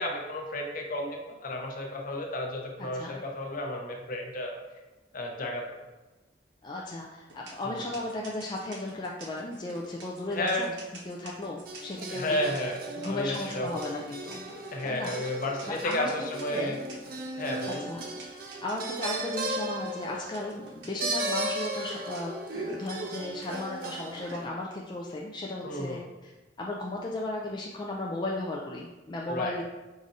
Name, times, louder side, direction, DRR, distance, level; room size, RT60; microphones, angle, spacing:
voice 1, 0.0-4.6 5.1-5.8 7.7-7.8 10.3-10.7 12.1-13.8 14.7-16.8 17.4-17.9 25.6-26.0 29.3-29.6, left 1 dB, 50° left, 1 dB, 0.7 m, -32 dB
voice 2, 6.6-10.7 11.0-12.5 13.0-14.4 14.8-15.3 15.6-16.1 16.5-16.8 17.9-18.0 18.4-26.3 26.6-29.6, left 2 dB, 25° left, -2 dB, 0.3 m, -35 dB
sound 1, 7.3-24.4, right 2 dB, 75° right, 0.9 m, -44 dB
sound 2, 11.7-24.5, right 1 dB, 50° right, 0.5 m, -37 dB
4.8 x 2.6 x 4.0 m, 1.1 s
head